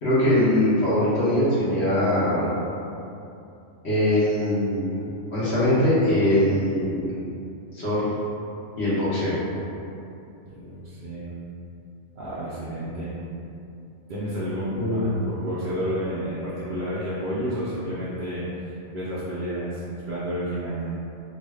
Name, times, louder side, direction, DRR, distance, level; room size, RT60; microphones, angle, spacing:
voice 1, 0.0-2.5 3.8-4.9 5.3-7.0 7.7-8.0 8.8-9.4 14.7-15.0, left 1 dB, 60° left, -11 dB, 1.4 m, -22 dB
voice 2, 10.5-11.3 12.2-13.1 14.1-20.9, equal, 55° right, -9 dB, 0.6 m, -30 dB
3.7 x 2.4 x 3.3 m, 2.7 s
omnidirectional pair, 1.3 m